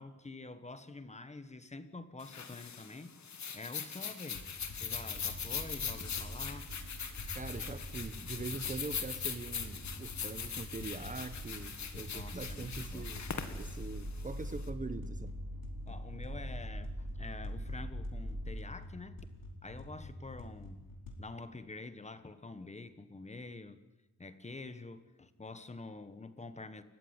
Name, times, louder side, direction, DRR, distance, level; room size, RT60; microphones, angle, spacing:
voice 1, 0.0-3.2 3.5-6.7 12.1-13.2 15.9-19.3 19.6-20.8 21.2-23.8 24.2-26.8, left 3 dB, 20° left, 11 dB, 1.3 m, -47 dB
sound 1, 2.2-14.6, left 6 dB, 60° left, 2.3 m, -41 dB
sound 2, 4.3-21.2, left 1 dB, 85° left, 4.6 m, -48 dB
sound 3, 5.1-18.6, equal, 50° right, 6.0 m, -44 dB
voice 2, 7.3-13.2 13.5-15.3, right 3 dB, 25° right, 11 dB, 1.0 m, -43 dB
29.5 x 15.5 x 9.8 m, 1.1 s
wide cardioid pair, 165°, 32 cm